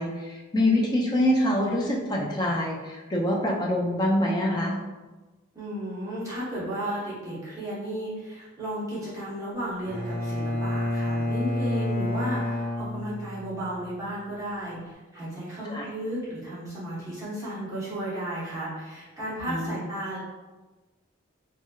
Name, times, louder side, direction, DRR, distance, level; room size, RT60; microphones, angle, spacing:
voice 1, 0.0-4.8 15.7-15.8 19.5-19.8, left 1 dB, 20° left, -2 dB, 0.4 m, -25 dB
voice 2, 5.5-20.2, right 1 dB, 15° right, -11 dB, 1.0 m, -34 dB
Bowed string instrument, 9.9-13.7, left 1 dB, 45° right, 0.8 m, -29 dB
3.1 x 2.8 x 2.2 m, 1.2 s
head